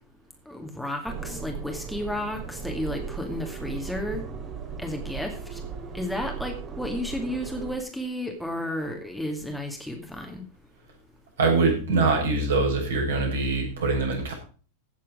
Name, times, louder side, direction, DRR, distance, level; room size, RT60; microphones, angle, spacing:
voice 1, 0.5-4.3 4.8-5.6 5.9-10.4, left 1 dB, ahead, 2 dB, 2.3 m, -32 dB
sound 1, 1.0-7.8, right 6 dB, 30° right, 2.9 m, -37 dB
voice 2, 11.4-14.3, right 3 dB, 65° right, 0 dB, 6.7 m, -23 dB
16.0 x 7.5 x 5.0 m, 0.38 s
figure-of-eight pair, 90°, 0 cm